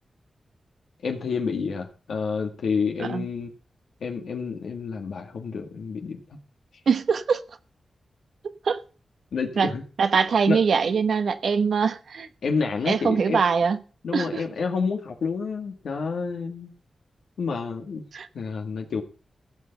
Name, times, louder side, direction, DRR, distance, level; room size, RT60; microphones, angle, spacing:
voice 1, 1.0-3.5 4.0-6.2 9.3-9.8 10.2-10.6 12.4-13.4 14.0-16.7 17.4-18.0 18.3-19.0, left 5 dB, 85° left, 1.8 m, -29 dB
voice 2, 6.9-7.4 8.7-8.8 9.6-9.7 10.0-12.3 12.9-13.8 14.1-14.4 18.1-18.3, right 5 dB, 80° right, 1.1 m, -22 dB
16.0 x 5.9 x 8.0 m
cardioid pair, 45°, 0 cm